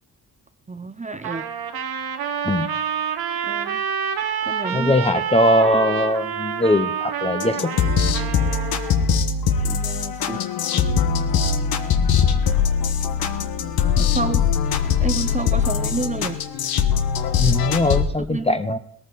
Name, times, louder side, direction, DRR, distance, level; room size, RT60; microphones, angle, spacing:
voice 1, 0.7-1.5 3.4-3.8 4.4-5.0 9.6-10.4 14.0-14.5 15.0-16.4 18.2-18.8, right 3 dB, 20° right, 11 dB, 0.8 m, -30 dB
Trumpet, 1.2-9.0, right 7 dB, 80° right, 1.4 m, -27 dB
voice 2, 4.7-7.7 17.4-18.8, left 1 dB, 15° left, 10 dB, 0.8 m, -20 dB
sound 1, 7.4-18.0, left 6 dB, 75° left, 1.4 m, -21 dB
18.5 x 14.0 x 4.1 m, 0.70 s
cardioid pair, 90°, 37 cm